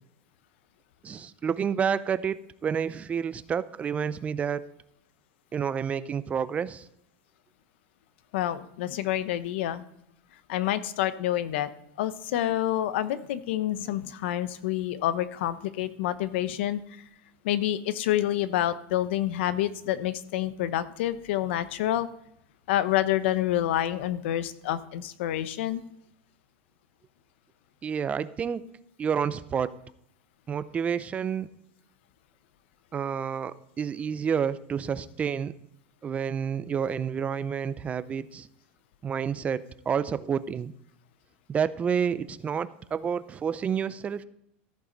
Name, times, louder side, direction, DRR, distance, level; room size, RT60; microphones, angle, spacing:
voice 1, 1.0-4.7 5.5-6.9 27.8-28.6 29.0-29.8 30.5-31.5 32.9-35.5 36.0-38.5 39.0-40.7 41.5-44.2, right 7 dB, 20° right, 15 dB, 0.5 m, -29 dB
voice 2, 8.3-9.8 10.5-11.7 12.0-16.8 17.4-22.1 22.7-25.8, left 12 dB, 75° left, 13 dB, 0.9 m, -28 dB
14.0 x 9.4 x 4.0 m, 0.74 s
supercardioid pair, 140°, 6 cm